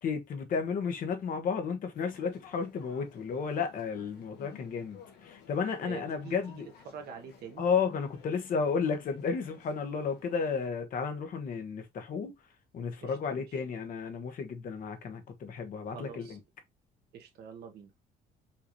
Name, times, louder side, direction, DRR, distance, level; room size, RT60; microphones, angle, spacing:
voice 1, 0.0-6.7 7.6-12.3 12.7-16.4, left 5 dB, 55° left, 1.2 m, -33 dB
sound 1, 1.9-10.7, left 7 dB, 80° left, 1.5 m, -56 dB
voice 2, 5.8-7.6 13.0-13.6 15.9-16.4 17.1-18.0, right 7 dB, 70° right, 1.3 m, -46 dB
5.6 x 3.1 x 2.7 m
cardioid pair, 110°, 17 cm